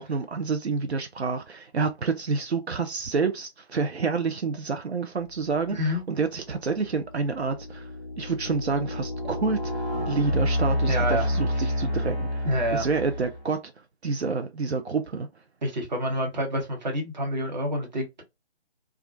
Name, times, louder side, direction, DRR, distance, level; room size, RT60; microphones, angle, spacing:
voice 1, 0.0-7.9 8.2-12.5 12.7-13.6 14.0-15.3, right 4 dB, 85° right, 0.5 m, -28 dB
sound 1, 5.7-6.0 6.6-13.5, left 1 dB, 5° right, 0.6 m, -29 dB
voice 2, 5.7-6.0 10.9-11.3 12.4-12.9 15.6-18.2, equal, 45° right, 0.9 m, -28 dB
2.4 x 2.1 x 2.4 m
figure-of-eight pair, 150°, 32 cm